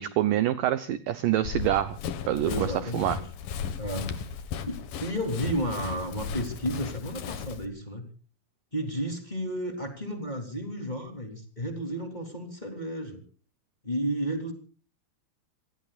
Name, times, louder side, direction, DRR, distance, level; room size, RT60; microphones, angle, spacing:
voice 1, 0.0-2.0 2.3-3.2, right 13 dB, 75° right, 12 dB, 2.1 m, -26 dB
Run, 1.4-7.7, left 7 dB, 65° left, 2.9 m, -36 dB
voice 2, 2.4-3.2 3.8-4.1 4.7-8.0 8.7-13.2 13.8-14.5, equal, 10° left, 4 dB, 2.8 m, -32 dB
27.5 x 19.5 x 2.5 m, 0.40 s
omnidirectional pair, 4.8 m